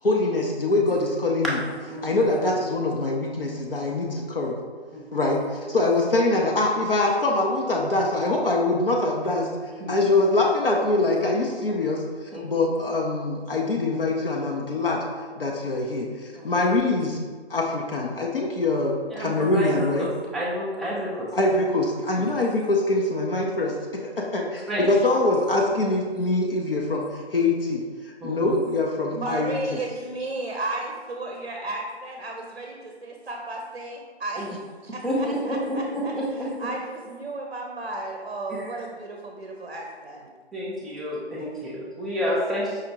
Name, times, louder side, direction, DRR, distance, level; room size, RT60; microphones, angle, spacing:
voice 1, 0.0-1.6 2.0-4.6 5.1-9.5 9.9-15.0 15.4-17.2 17.5-20.1 21.3-29.8, left 2 dB, 55° left, -1 dB, 0.6 m, -24 dB
voice 2, 19.1-19.7 20.0-20.1 20.3-21.3 22.2-22.3 24.7-24.8 28.2-28.6 34.4-34.5 35.0-36.5 40.5-42.8, equal, ahead, -8 dB, 0.3 m, -29 dB
voice 3, 29.1-34.5 34.8-40.3, right 2 dB, 55° right, 1 dB, 0.6 m, -34 dB
4.9 x 3.2 x 2.8 m, 1.5 s
figure-of-eight pair, 155°, 34 cm